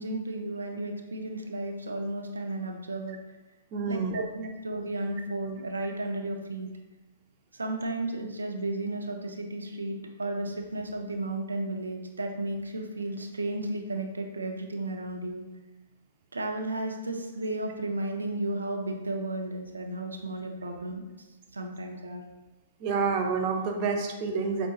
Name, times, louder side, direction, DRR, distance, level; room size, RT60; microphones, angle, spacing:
voice 1, 0.0-3.2 3.9-6.7 7.5-15.4 16.3-21.0 21.5-22.2, right 2 dB, 90° right, 2 dB, 0.5 m, -33 dB
voice 2, 3.7-4.2 22.8-24.7, right 5 dB, 40° right, 3 dB, 0.7 m, -28 dB
4.8 x 3.6 x 2.4 m, 1.1 s
hypercardioid pair, 120°, 0 cm